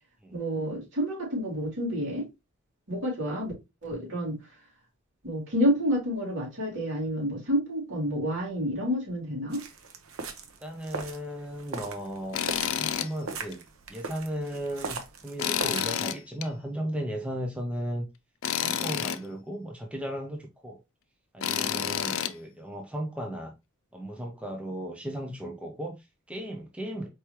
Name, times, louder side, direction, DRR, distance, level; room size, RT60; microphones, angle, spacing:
voice 1, 0.3-2.3 2.9-3.5 3.8-4.5 5.2-9.6, equal, 60° right, 2.7 m, -29 dB
sound 1, 9.5-15.8, right 4 dB, 80° right, 0.8 m, -40 dB
voice 2, 10.6-12.4 12.7-13.6 13.9-15.0 15.2-18.1 18.5-20.8 21.3-23.5 23.9-27.1, right 1 dB, 5° right, 0.5 m, -35 dB
Tools, 12.3-13.1 13.5-13.6 15.4-16.5 18.4-19.2 21.4-22.3, left 9 dB, 70° left, 0.4 m, -29 dB
4.5 x 3.2 x 2.9 m
head